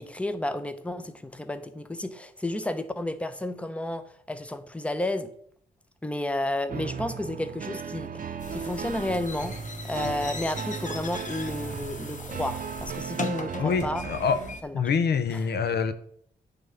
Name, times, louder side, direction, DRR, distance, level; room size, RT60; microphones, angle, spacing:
voice 1, 0.0-5.3 6.0-9.5 9.8-14.0 14.6-14.8 15.3-15.4, left 1 dB, 5° left, 0.9 m, -32 dB
sound 1, 6.7-14.6, right 6 dB, 50° right, 0.7 m, -36 dB
sound 2, 8.4-14.6, left 4 dB, 45° left, 1.1 m, -39 dB
voice 2, 13.6-14.4 14.7-15.9, left 6 dB, 70° left, 0.8 m, -25 dB
9.1 x 3.8 x 7.0 m
cardioid pair, 80°, 18 cm